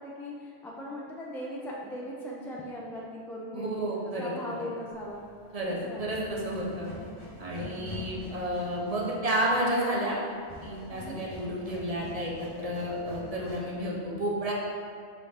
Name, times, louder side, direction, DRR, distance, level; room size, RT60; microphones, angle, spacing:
voice 1, 0.0-3.9 4.1-5.2 5.8-6.3 6.7-7.0 7.6-8.2 10.9-11.2, left 1 dB, 5° left, -4 dB, 0.5 m, -39 dB
voice 2, 3.5-4.3 5.5-6.9 7.4-10.2 10.6-14.5, right 1 dB, 35° right, -4 dB, 1.0 m, -31 dB
sound 1, 4.9-13.9, left 1 dB, 25° left, 1.1 m, -46 dB
5.5 x 4.9 x 3.6 m, 2.2 s
omnidirectional pair, 1.1 m